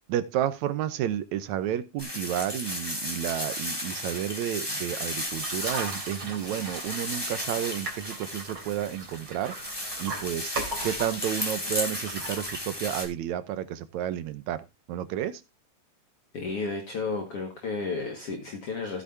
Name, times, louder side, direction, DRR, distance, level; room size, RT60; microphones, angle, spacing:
voice 1, 0.1-10.5 10.8-15.4, right 11 dB, 75° right, 2.1 m, -31 dB
sound 1, 2.0-13.0, left 1 dB, 10° left, 2.3 m, -34 dB
sound 2, 5.3-13.0, right 2 dB, 40° right, 3.8 m, -39 dB
voice 2, 16.3-19.0, left 4 dB, 50° left, 2.5 m, -32 dB
15.5 x 8.5 x 2.7 m
omnidirectional pair, 3.6 m